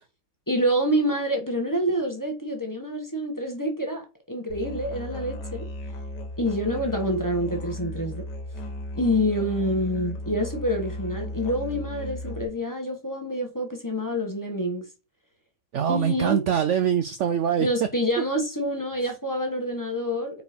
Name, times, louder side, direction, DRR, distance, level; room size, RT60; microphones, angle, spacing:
voice 1, 0.5-5.7 6.4-8.2 8.9-14.8 15.9-16.4 17.6-20.4, equal, 15° left, 1.1 m, -27 dB
Musical instrument, 4.5-12.4, left 1 dB, 80° left, 1.8 m, -35 dB
voice 2, 15.7-17.7 19.0-19.1, right 8 dB, 80° right, 0.6 m, -23 dB
4.6 x 4.5 x 5.0 m
omnidirectional pair, 1.8 m